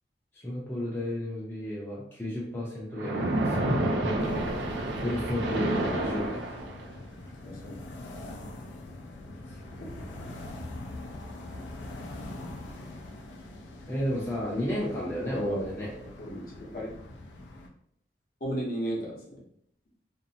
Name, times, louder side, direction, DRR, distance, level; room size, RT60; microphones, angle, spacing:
voice 1, 0.4-3.7 5.0-6.4 13.9-15.9, left 1 dB, 10° left, -6 dB, 0.5 m, -32 dB
Splash splatter, 3.0-7.0, right 1 dB, 80° right, 0.5 m, -29 dB
sound 1, 4.2-17.7, left 2 dB, 85° left, 0.4 m, -43 dB
voice 2, 7.4-7.8 9.8-10.0 15.2-15.6 16.2-16.9 18.4-19.4, right 1 dB, 50° left, -3 dB, 0.7 m, -35 dB
2.6 x 2.0 x 2.7 m, 0.69 s
head